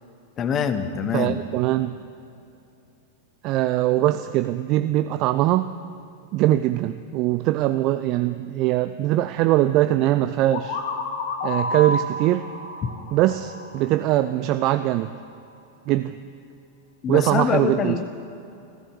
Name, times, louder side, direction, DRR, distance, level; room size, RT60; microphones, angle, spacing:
voice 1, 0.4-1.3 12.8-12.9 17.0-18.0, left 7 dB, 30° left, 10 dB, 1.1 m, -24 dB
voice 2, 1.1-2.0 3.4-5.7 6.3-10.8 11.4-12.5 13.1-15.1 15.9-16.2 17.1-18.0, right 14 dB, 40° right, 11 dB, 0.4 m, -22 dB
sound 1, 10.5-14.3, left 2 dB, 55° left, 2.0 m, -30 dB
14.5 x 14.0 x 7.1 m, 2.7 s
figure-of-eight pair, 90°, 0 cm